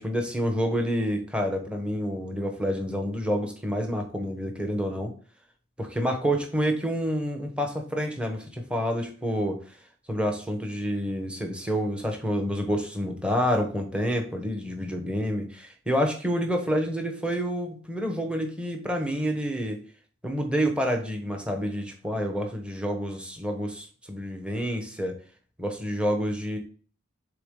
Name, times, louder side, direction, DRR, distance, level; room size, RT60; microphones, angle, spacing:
voice 1, 0.0-5.1 5.8-9.6 10.1-19.8 20.2-25.2 25.6-26.6, equal, 5° right, 3 dB, 0.9 m, -28 dB
6.8 x 3.9 x 3.7 m, 0.41 s
head